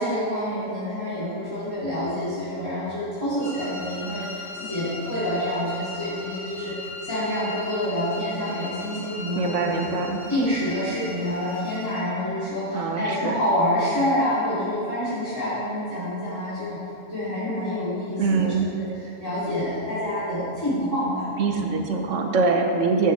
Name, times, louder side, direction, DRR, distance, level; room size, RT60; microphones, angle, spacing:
voice 1, 0.0-6.7 7.0-9.9 10.3-16.8 17.1-18.5 18.8-21.6, left 1 dB, 20° left, -14 dB, 2.8 m, -27 dB
sound 1, 3.4-12.1, left 1 dB, 75° left, 2.4 m, -39 dB
voice 2, 9.4-10.2 12.7-13.4 18.2-18.7 21.4-23.1, right 4 dB, 70° right, 3 dB, 1.3 m, -23 dB
13.5 x 8.2 x 3.4 m, 2.6 s
omnidirectional pair, 1.3 m